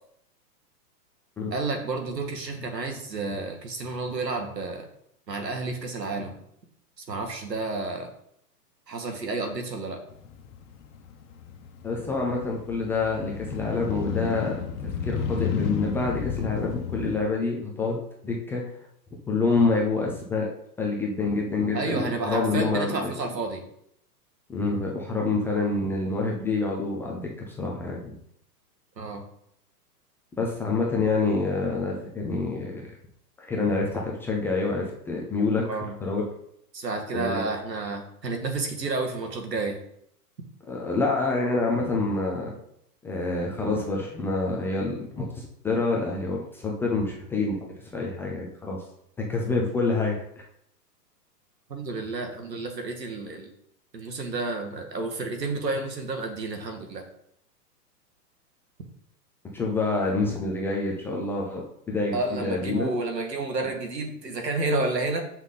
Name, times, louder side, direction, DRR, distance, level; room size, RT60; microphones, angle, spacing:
voice 1, 1.5-4.9 5.3-6.4 7.1-8.1 8.9-10.0 21.7-23.7 29.0-29.2 35.6-36.0 36.7-39.8 51.7-53.5 53.9-57.0 62.1-65.2, right 3 dB, 90° right, 4 dB, 2.1 m, -30 dB
Motorcycle, 10.1-17.2, left 7 dB, 50° left, 1.4 m, -32 dB
voice 2, 11.8-14.6 15.0-18.6 19.3-20.5 20.8-23.1 24.5-28.1 30.4-32.9 33.4-35.6 36.0-36.2 37.1-37.5 40.7-42.5 43.0-47.6 47.9-48.8 49.3-50.2 59.5-61.6 61.9-62.9, left 3 dB, 5° left, -2 dB, 0.4 m, -27 dB
8.0 x 5.6 x 3.8 m, 0.73 s
hypercardioid pair, 125°, 48 cm